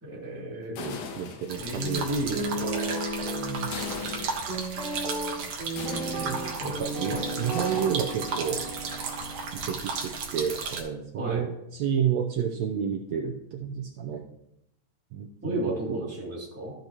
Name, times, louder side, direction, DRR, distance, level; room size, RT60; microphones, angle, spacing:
voice 1, 0.0-0.8 1.5-3.0 6.3-6.8 7.1-7.2 11.1-11.5 15.4-16.7, right 1 dB, 5° right, -6 dB, 2.3 m, -33 dB
sound 1, 0.6-1.9 3.7-4.6 5.8-9.9 10.2-10.7, left 6 dB, 70° left, 2.4 m, -41 dB
voice 2, 0.7-2.1 3.2-3.8 6.2-8.6 9.5-14.2 15.1-16.1, right 8 dB, 85° right, 3 dB, 1.5 m, -31 dB
sound 2, 1.5-10.8, right 4 dB, 55° right, 1.9 m, -35 dB
Guitar, 2.3-10.5, right 2 dB, 20° right, 2.9 m, -34 dB
13.5 x 8.2 x 3.0 m, 0.81 s
omnidirectional pair, 3.9 m